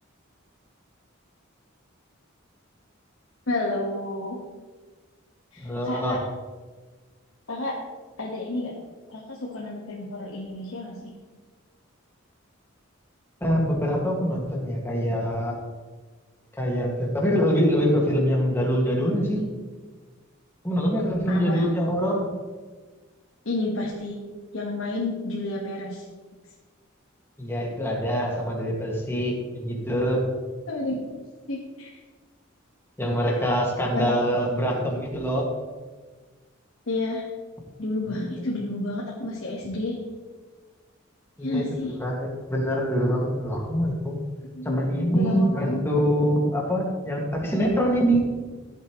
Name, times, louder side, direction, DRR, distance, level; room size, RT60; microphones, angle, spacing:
voice 1, 3.5-4.4 5.5-6.2 7.5-7.8 8.2-8.7 9.1-11.1 21.3-21.6 23.4-24.2 24.5-26.0 30.7-31.0 31.5-31.9 33.9-34.1 36.9-37.2 37.8-40.0 41.4-41.9 44.5-45.8, left 2 dB, 70° left, -3 dB, 1.7 m, -30 dB
voice 2, 5.6-6.2 13.4-15.6 16.6-19.4 20.6-22.3 27.4-30.2 33.0-35.5 38.4-38.5 41.4-41.6 42.0-44.2 44.6-48.2, equal, 10° left, -2 dB, 2.2 m, -24 dB
15.5 x 8.2 x 3.2 m, 1.4 s
head